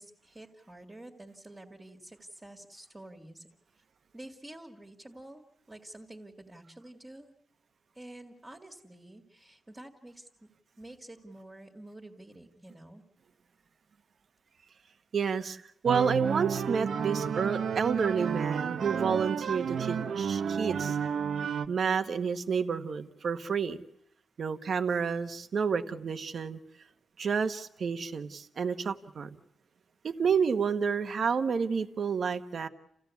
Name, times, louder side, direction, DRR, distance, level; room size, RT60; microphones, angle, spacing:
voice 1, 0.0-3.5 3.8-3.9 4.1-7.3 7.9-10.5 10.8-13.0, right 1 dB, 15° right, 1 dB, 2.1 m, -49 dB
voice 2, 15.1-21.0 21.7-23.8 24.4-26.6 27.2-29.3 30.0-32.7, right 6 dB, 55° right, 10 dB, 1.2 m, -30 dB
sound 1, 15.9-21.7, right 7 dB, 75° right, 0.9 m, -31 dB
29.5 x 15.5 x 8.3 m, 0.80 s
wide cardioid pair, 155°, 0 cm